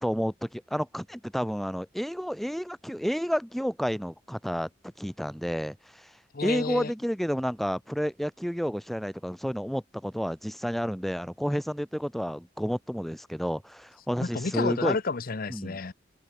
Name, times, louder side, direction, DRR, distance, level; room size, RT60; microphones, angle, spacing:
voice 1, 0.0-4.7 5.0-6.1 6.4-15.0 15.5-15.8, equal, ahead, 1.4 m, -30 dB
voice 2, 6.3-6.9 14.2-15.9, left 4 dB, 50° left, 0.8 m, -30 dB
head